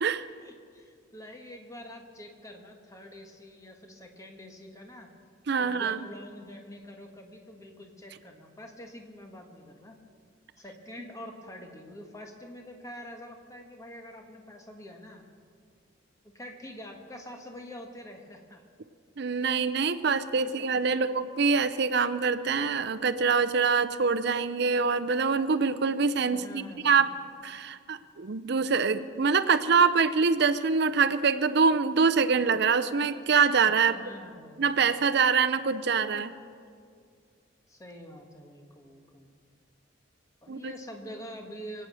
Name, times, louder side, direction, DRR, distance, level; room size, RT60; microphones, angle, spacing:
voice 1, 0.4-5.1 5.6-9.9 10.6-15.3 16.3-18.6 20.3-21.1 23.4-23.5 26.3-27.0 33.8-34.7 37.7-39.3 40.4-41.9, equal, 15° left, 3 dB, 1.5 m, -46 dB
voice 2, 5.5-6.1 19.2-27.1 27.4-34.0 34.6-36.3 40.5-40.7, right 5 dB, 60° right, 11 dB, 0.6 m, -25 dB
24.0 x 8.9 x 6.3 m, 2.2 s
head